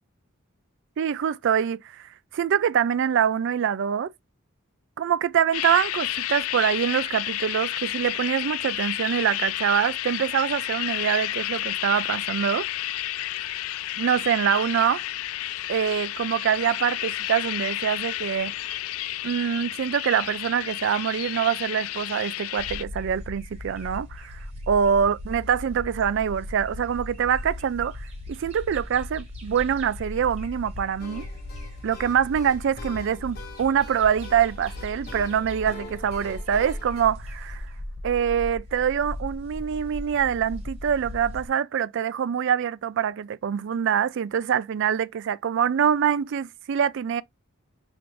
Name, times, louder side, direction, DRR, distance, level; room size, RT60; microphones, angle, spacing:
voice 1, 1.0-4.1 5.0-12.7 14.0-15.0 15.7-18.5 19.2-24.4 24.7-31.3 31.8-37.7 38.0-47.2, right 8 dB, 60° right, 0.3 m, -25 dB
sound 1, 5.5-22.8, left 14 dB, 75° left, 0.3 m, -31 dB
sound 2, 22.6-41.5, left 1 dB, 30° right, 1.3 m, -38 dB
sound 3, 31.0-37.0, left 3 dB, 50° left, 1.0 m, -45 dB
5.1 x 2.5 x 3.1 m
head